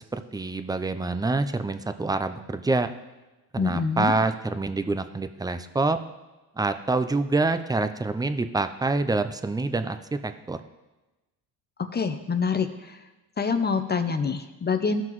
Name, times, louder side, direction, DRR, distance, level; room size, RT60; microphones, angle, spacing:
voice 1, 0.0-2.9 3.5-6.0 6.6-10.6, right 3 dB, 10° right, 10 dB, 0.5 m, -26 dB
voice 2, 3.6-4.1 11.9-13.0 13.4-15.0, left 5 dB, 25° left, 8 dB, 0.7 m, -26 dB
14.5 x 5.8 x 3.1 m, 1.1 s
cardioid pair, 85°, 40 cm